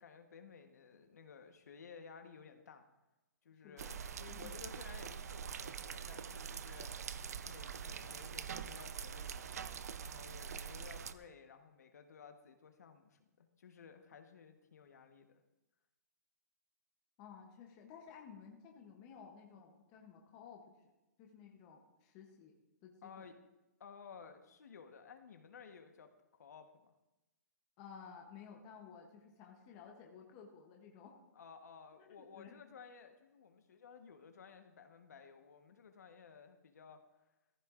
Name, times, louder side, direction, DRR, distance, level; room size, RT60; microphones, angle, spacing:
voice 1, 0.0-2.8 3.4-6.9 7.4-9.6 10.0-15.4 23.0-23.4 23.8-26.9 31.3-37.0, left 6 dB, 65° left, 6 dB, 1.1 m, -56 dB
voice 2, 3.6-4.0 4.3-4.5 17.2-20.6 21.2-22.5 22.8-23.3 27.8-31.2 32.0-32.6, left 7 dB, 20° left, 1 dB, 0.8 m, -55 dB
sound 1, 3.8-11.1, right 7 dB, 60° right, 0.5 m, -44 dB
15.5 x 14.5 x 2.5 m, 1.0 s
hypercardioid pair, 180°, 9 cm